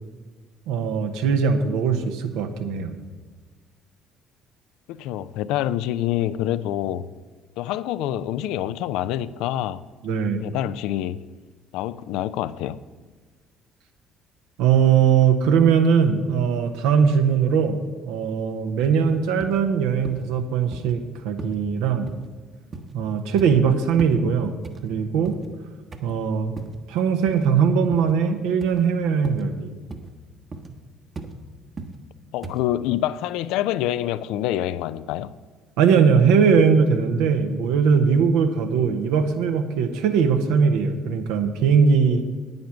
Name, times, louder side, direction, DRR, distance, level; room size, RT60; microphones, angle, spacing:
voice 1, 0.7-2.9 10.0-10.4 14.6-22.1 22.9-24.6 24.8-25.4 26.0-26.5 26.9-29.7 35.8-42.2, right 6 dB, 70° right, 0.9 m, -20 dB
voice 2, 4.9-7.1 7.6-9.8 10.1-11.2 11.7-12.8 32.3-35.4, left 12 dB, 70° left, 0.4 m, -26 dB
sound 1, 18.8-18.9 19.4-19.6 20.0-20.3 20.7-20.9 21.4-21.6 22.1-22.3 22.7-23.0 23.4-23.7 24.0-24.2 24.6-25.5 25.9-26.2 26.6-26.8 27.3-27.5 27.9-28.2 28.6-28.8 29.2-29.5 29.9-30.1 30.5-30.8 31.2-31.3 31.8-32.0 32.4-32.6, right 3 dB, 35° right, 1.2 m, -37 dB
9.4 x 9.3 x 5.8 m
hypercardioid pair, 50°, 0 cm